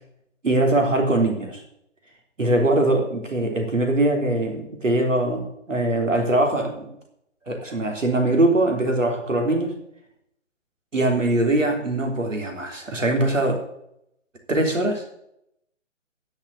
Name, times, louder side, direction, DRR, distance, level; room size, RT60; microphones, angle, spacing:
voice 1, 0.4-1.6 2.4-6.9 7.5-9.7 10.9-13.6 14.5-15.1, right 2 dB, 75° right, 3 dB, 3.4 m, -22 dB
10.0 x 6.5 x 8.0 m, 0.76 s
figure-of-eight pair, 135°, 38 cm